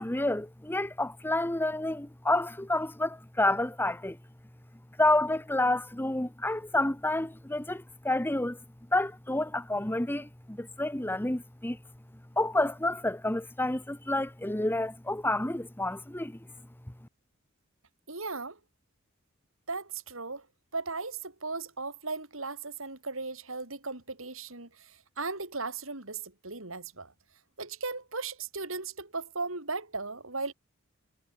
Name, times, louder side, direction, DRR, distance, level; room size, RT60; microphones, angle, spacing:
voice 1, 0.0-4.2 5.0-8.6 8.9-11.8 12.4-16.4, left 1 dB, 10° left, 1.1 m, -29 dB
voice 2, 18.1-18.6 19.7-20.5 20.7-27.1 27.6-30.5, right 3 dB, 75° right, 6.0 m, -37 dB
head